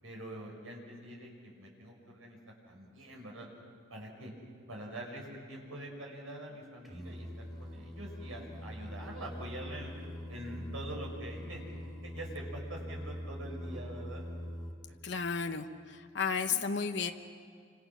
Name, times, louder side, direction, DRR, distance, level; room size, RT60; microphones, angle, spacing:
voice 1, 0.0-2.4 2.7-3.5 3.9-4.3 4.7-7.3 7.6-9.9 10.3-11.6 12.0-14.2 14.9-15.0 16.4-16.5, right 1 dB, 80° right, 0 dB, 6.4 m, -45 dB
Singing, 6.8-14.7, equal, ahead, 2.8 m, -43 dB
voice 2, 15.0-17.1, left 6 dB, 55° left, 6 dB, 1.0 m, -33 dB
28.5 x 26.5 x 6.2 m, 2.1 s
head